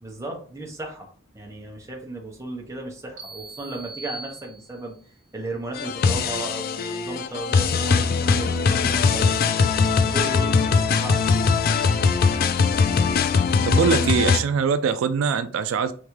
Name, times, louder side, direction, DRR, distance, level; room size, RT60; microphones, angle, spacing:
voice 1, 0.0-5.0 5.3-9.3 9.6-9.7 10.0-11.2, right 2 dB, 15° right, 0.9 m, -35 dB
sound 1, 3.2-5.0, right 2 dB, 40° right, 1.0 m, -40 dB
sound 2, 5.8-14.4, left 5 dB, 45° left, 0.3 m, -21 dB
voice 2, 13.6-15.9, right 5 dB, 75° right, 0.3 m, -22 dB
3.9 x 3.5 x 3.1 m
head